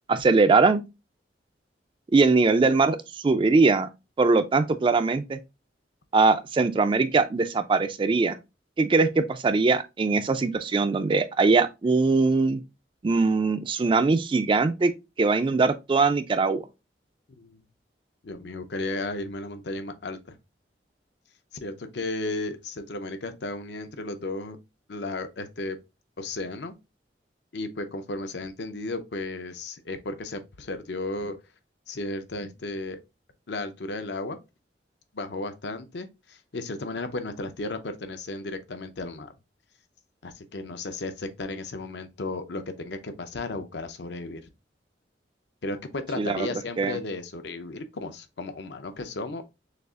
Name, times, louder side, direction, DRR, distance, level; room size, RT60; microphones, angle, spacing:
voice 1, 0.1-0.8 2.1-3.0 3.2-3.9 4.2-5.4 6.1-8.3 8.8-12.6 13.0-14.9 15.2-16.6 46.2-46.5 46.8-47.0, right 3 dB, 30° right, 0.3 m, -21 dB
voice 2, 17.3-17.6 18.2-20.4 21.5-24.6 24.9-25.8 26.2-26.7 27.5-31.4 31.9-33.0 33.5-34.4 35.1-39.3 40.2-44.4 45.6-49.4, left 2 dB, 70° left, 0.6 m, -34 dB
6.5 x 2.4 x 2.4 m
head